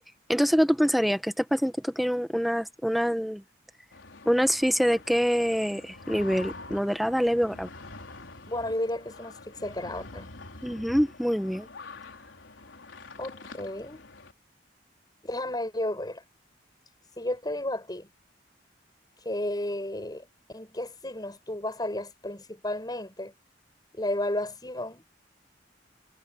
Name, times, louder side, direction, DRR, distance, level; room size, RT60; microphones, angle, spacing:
voice 1, 0.3-3.4 4.2-7.7 10.6-11.7, equal, ahead, 1.6 m, -25 dB
sound 1, 3.9-14.3, left 3 dB, 85° left, 4.1 m, -46 dB
voice 2, 8.5-10.3 13.2-14.0 15.2-16.2 17.2-18.1 19.2-23.3 23.9-25.1, left 1 dB, 20° left, 7.9 m, -33 dB
head